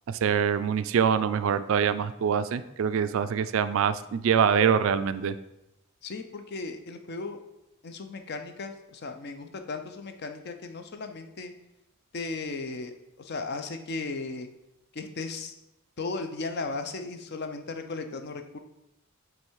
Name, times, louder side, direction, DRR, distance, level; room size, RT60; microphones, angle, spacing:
voice 1, 0.1-5.3, right 7 dB, 65° right, 13 dB, 0.3 m, -24 dB
voice 2, 6.0-7.4 7.8-11.5 12.1-14.5 14.9-15.5 16.0-18.6, left 3 dB, 50° left, 7 dB, 0.6 m, -36 dB
7.8 x 3.2 x 4.6 m, 0.89 s
head